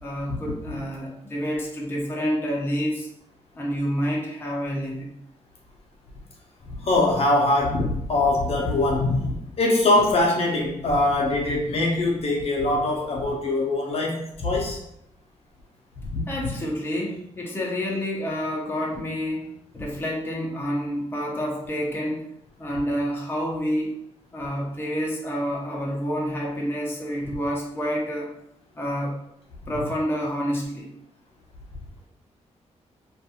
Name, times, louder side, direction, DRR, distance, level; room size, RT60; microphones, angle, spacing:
voice 1, 0.0-3.1 3.5-5.1 16.3-22.3 22.6-24.0 24.3-28.3 28.8-29.1 29.7-30.9, equal, 20° left, -3 dB, 0.6 m, -28 dB
voice 2, 6.8-14.8 16.0-16.2, left 2 dB, 55° left, -2 dB, 0.6 m, -22 dB
2.5 x 2.3 x 2.8 m, 0.77 s
cardioid pair, 100°, 12 cm